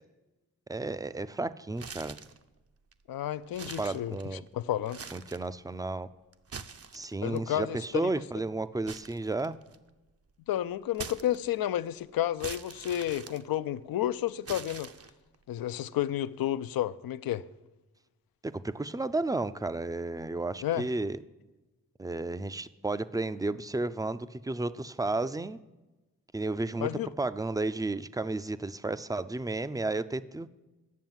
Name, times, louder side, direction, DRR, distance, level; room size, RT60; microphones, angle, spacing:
voice 1, 0.7-2.2 3.8-4.4 5.1-6.1 6.9-9.6 18.4-21.2 22.0-25.6 26.3-26.9 27.2-30.5, right 2 dB, 10° right, 0.4 m, -32 dB
sound 1, 1.7-2.4 2.9-3.0 3.5-4.5 4.8-5.5 6.3-7.4 8.9-9.9 10.9-11.8 12.4-14.0 14.4-15.4, right 6 dB, 40° right, 0.7 m, -44 dB
voice 2, 3.1-5.0 7.2-8.1 10.5-14.9 15.5-17.5 20.6-20.9 26.8-27.1, left 12 dB, 70° left, 0.5 m, -31 dB
9.4 x 7.0 x 7.4 m
supercardioid pair, 45°, 36 cm